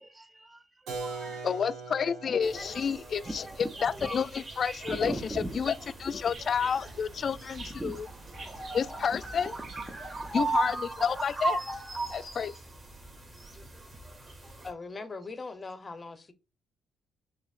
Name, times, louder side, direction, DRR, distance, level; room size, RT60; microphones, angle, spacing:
voice 1, 0.0-0.6 1.0-1.5 2.5-2.9 3.2-4.3 4.8-5.6 6.6-6.9 7.6-8.1 9.9-10.4 11.1-11.2 11.5-11.7 11.9-12.1 13.6-14.1 14.4-14.6, right 2 dB, 15° right, 0.7 m, -41 dB
Keyboard (musical), 0.9-6.5, right 3 dB, 90° right, 1.1 m, -43 dB
voice 2, 1.4-3.5 3.8-5.7 6.0-8.1 8.7-9.5 10.3-11.6 12.1-12.5, left 6 dB, 50° left, 0.3 m, -30 dB
sound 1, 2.4-14.7, right 3 dB, 35° right, 2.3 m, -38 dB
sound 2, 5.0-10.6, right 2 dB, 55° right, 1.3 m, -48 dB
voice 3, 14.6-16.3, left 3 dB, 30° left, 0.8 m, -40 dB
6.2 x 2.9 x 2.4 m
cardioid pair, 90°, 0 cm